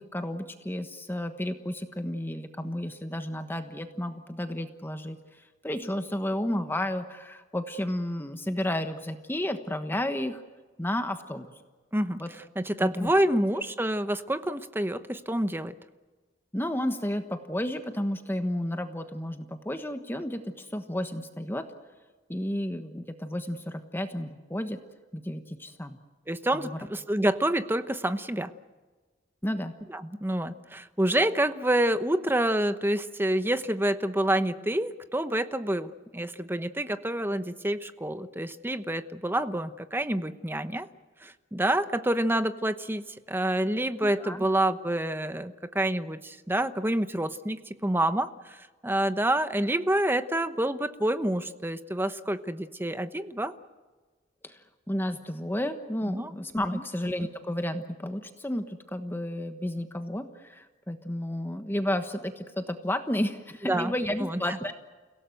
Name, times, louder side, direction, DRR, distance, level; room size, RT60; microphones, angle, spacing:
voice 1, 0.0-10.4 10.8-11.5 12.2-12.3 12.8-13.1 16.5-21.7 22.3-24.8 25.1-26.0 26.5-26.8 29.4-29.7 44.0-44.4 54.4-64.7, left 1 dB, 10° left, 7 dB, 1.2 m, -32 dB
voice 2, 12.6-15.7 26.3-28.5 29.9-40.9 41.2-48.6 48.8-53.5 56.1-56.3 56.7-56.8 63.7-63.9 64.2-64.6, right 1 dB, 10° right, 11 dB, 1.0 m, -28 dB
30.0 x 17.5 x 7.9 m, 1.3 s
head